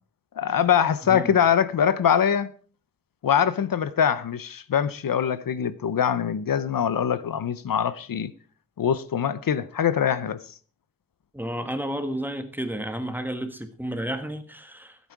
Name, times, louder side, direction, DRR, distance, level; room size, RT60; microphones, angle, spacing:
voice 1, 0.4-2.5 3.2-8.3 8.8-10.4, left 8 dB, 85° left, 0.7 m, -23 dB
voice 2, 11.3-15.0, right 1 dB, 5° right, 1.4 m, -31 dB
15.0 x 8.2 x 4.7 m
wide cardioid pair, 110°, 33 cm